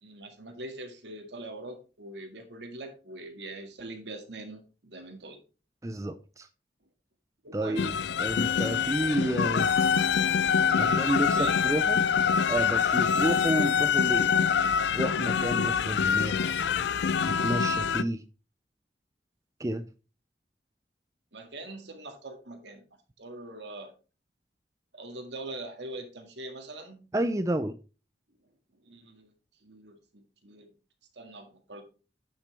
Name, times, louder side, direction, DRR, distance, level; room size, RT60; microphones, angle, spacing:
voice 1, 0.0-5.4 7.4-7.9 10.7-11.6 21.3-22.8 23.2-23.9 24.9-27.1 28.8-29.3 29.6-30.7 31.1-31.8, right 2 dB, 85° right, 2.0 m, -42 dB
voice 2, 5.8-6.5 7.5-7.9 8.2-9.7 10.8-12.0 12.5-14.3 14.9-16.4 17.2-18.2 19.6-19.8 27.1-27.7, right 1 dB, 20° right, 0.4 m, -30 dB
sound 1, 7.8-18.0, left 6 dB, 80° left, 0.4 m, -25 dB
10.0 x 5.9 x 3.4 m
head